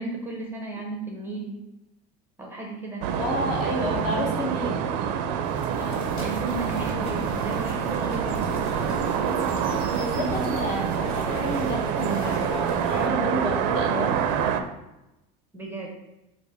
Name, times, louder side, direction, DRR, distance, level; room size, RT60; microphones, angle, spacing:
voice 1, 0.0-1.6 2.4-3.0 3.7-3.8 4.2-4.3 5.8-9.3 15.5-15.9, right 2 dB, 10° right, -1 dB, 0.5 m, -35 dB
sound 1, 3.0-14.6, right 8 dB, 85° right, 0.4 m, -27 dB
voice 2, 3.2-4.8 10.0-14.1, left 1 dB, 45° left, 0 dB, 0.9 m, -30 dB
sound 2, 5.4-12.5, left 1 dB, 10° left, 1.1 m, -44 dB
sound 3, 5.9-13.1, left 1 dB, 75° left, 1.2 m, -37 dB
4.4 x 2.5 x 3.4 m, 0.95 s
cardioid pair, 165°, 20 cm